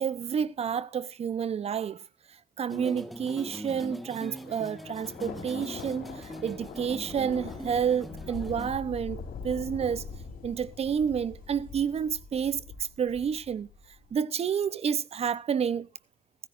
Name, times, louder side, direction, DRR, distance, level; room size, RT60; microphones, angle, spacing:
voice 1, 0.0-2.0 2.6-10.1 10.4-13.7 14.1-15.9, right 7 dB, 35° right, 0.8 m, -30 dB
sound 1, 2.7-8.7, equal, ahead, 1.5 m, -41 dB
Thunder, 4.2-14.0, left 5 dB, 55° left, 4.7 m, -43 dB
16.0 x 15.0 x 2.6 m
cardioid pair, 110°, 17 cm